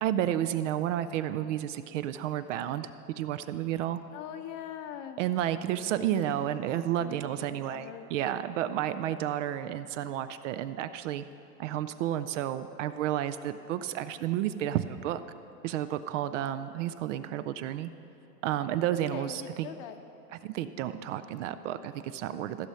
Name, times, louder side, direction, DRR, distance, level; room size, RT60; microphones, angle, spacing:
voice 1, 0.0-4.0 5.2-11.2 11.6-15.2 15.6-17.9 18.4-19.7 20.4-22.7, right 11 dB, 55° right, 12 dB, 0.5 m, -31 dB
voice 2, 4.1-5.2 7.0-8.1 19.1-20.0, left 9 dB, 40° left, 8 dB, 0.8 m, -42 dB
15.0 x 6.2 x 5.6 m, 2.9 s
hypercardioid pair, 125°, 47 cm